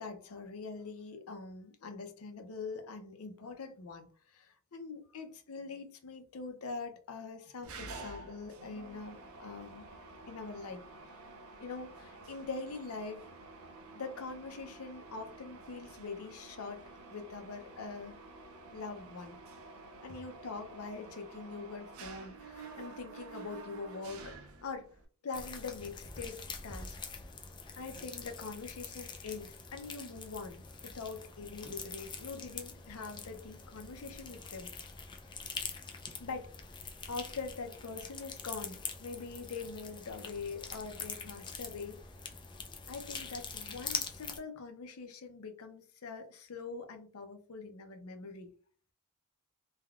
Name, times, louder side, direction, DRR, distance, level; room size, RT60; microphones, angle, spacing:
voice 1, 0.0-9.9 10.3-11.2 11.6-13.3 13.9-18.2 18.7-19.4 20.0-24.9 25.2-27.0 27.8-34.7 36.2-36.5 37.1-42.0 42.9-48.5, left 4 dB, 70° left, 6 dB, 0.6 m, -43 dB
Mechanisms, 7.6-25.1, right 3 dB, 65° right, 0.5 m, -50 dB
sound 1, 25.3-44.4, left 5 dB, 20° left, 0.3 m, -44 dB
3.3 x 2.2 x 2.3 m, 0.41 s
head